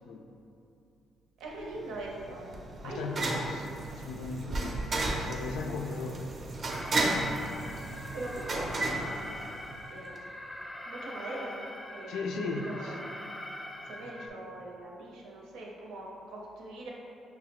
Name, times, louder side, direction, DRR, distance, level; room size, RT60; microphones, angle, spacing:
voice 1, 1.4-3.4 8.1-9.6 9.9-10.3 10.8-13.2 13.8-16.9, right 1 dB, 90° right, -3 dB, 0.6 m, -42 dB
sound 1, 1.6-9.9, right 2 dB, 45° right, 0.5 m, -34 dB
voice 2, 2.8-3.5 4.0-6.2 12.1-13.0 13.8-14.1, left 3 dB, 80° left, 4 dB, 0.3 m, -37 dB
Alarm, 6.7-14.3, left 1 dB, 10° left, 0.4 m, -43 dB
5.6 x 2.0 x 2.9 m, 2.7 s
cardioid pair, 90°, 0 cm